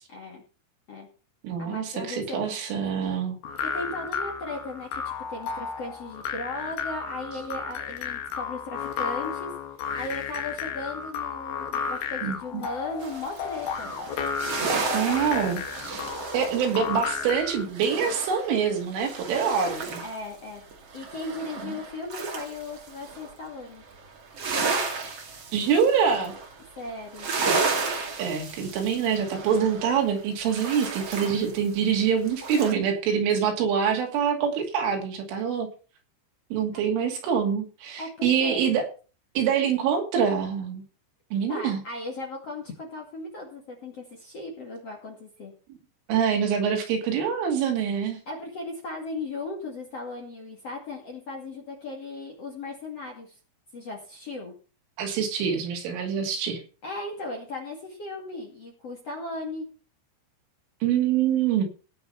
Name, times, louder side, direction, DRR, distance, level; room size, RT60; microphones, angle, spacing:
voice 1, 0.1-0.4 0.9-1.1 1.6-2.4 3.6-9.5 9.9-13.9 20.0-20.6 20.9-23.8 26.8-27.3 31.2-31.3 33.3-33.4 38.0-38.6 41.5-45.5 48.3-53.4 53.7-54.5 56.8-59.7, left 2 dB, 45° left, 1 dB, 2.3 m, -37 dB
voice 2, 1.4-3.4 12.2-12.7 14.9-16.1 16.3-20.0 21.6-21.8 25.5-26.3 28.2-35.7 36.5-38.9 39.4-40.8 41.3-41.8 46.1-48.2 55.0-56.6 60.8-61.6, right 7 dB, 75° right, 3 dB, 5.0 m, -25 dB
sound 1, 3.4-17.7, left 6 dB, 65° left, 3.2 m, -33 dB
sound 2, 13.0-20.3 20.6-23.3 23.7-32.7, right 4 dB, 40° right, 2.4 m, -33 dB
17.5 x 6.1 x 5.6 m, 0.36 s
omnidirectional pair, 5.7 m